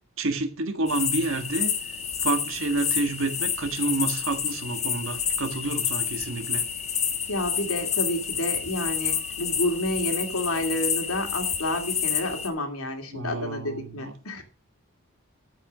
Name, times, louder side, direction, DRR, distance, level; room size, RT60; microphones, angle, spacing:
voice 1, 0.2-1.7 2.2-6.7 13.1-14.1, right 2 dB, 65° right, 1.7 m, -29 dB
sound 1, 0.9-12.5, left 7 dB, 30° left, 1.1 m, -29 dB
voice 2, 7.3-14.4, left 1 dB, 80° left, 2.4 m, -29 dB
13.0 x 5.3 x 6.2 m
head